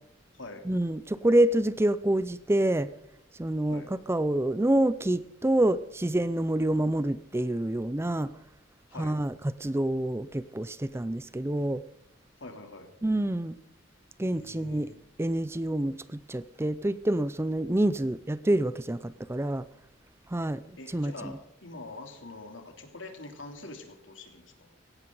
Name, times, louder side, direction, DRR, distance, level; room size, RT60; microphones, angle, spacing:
voice 1, 0.7-2.9 3.4-3.8 4.1-8.3 9.0-11.8 13.0-13.6 14.2-14.9 15.2-19.6 20.3-20.6 20.9-21.3, right 1 dB, 15° right, 15 dB, 0.5 m, -27 dB
voice 2, 12.4-12.9 14.3-15.0 20.8-24.7, left 2 dB, 75° left, 4 dB, 3.1 m, -44 dB
17.0 x 17.0 x 3.9 m, 0.79 s
head